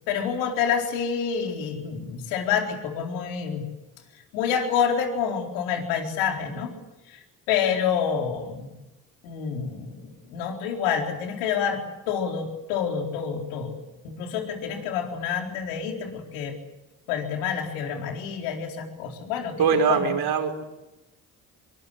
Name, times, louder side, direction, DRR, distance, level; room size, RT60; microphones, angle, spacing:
voice 1, 0.1-3.7 4.3-6.7 7.1-7.2 7.5-8.7 9.2-13.8 14.0-16.6 17.1-19.6 19.9-20.1, left 7 dB, 80° left, 2 dB, 4.3 m, -28 dB
voice 2, 19.6-20.6, right 6 dB, 60° right, 4 dB, 5.4 m, -22 dB
25.5 x 23.5 x 8.2 m, 0.98 s
hypercardioid pair, 45°, 43 cm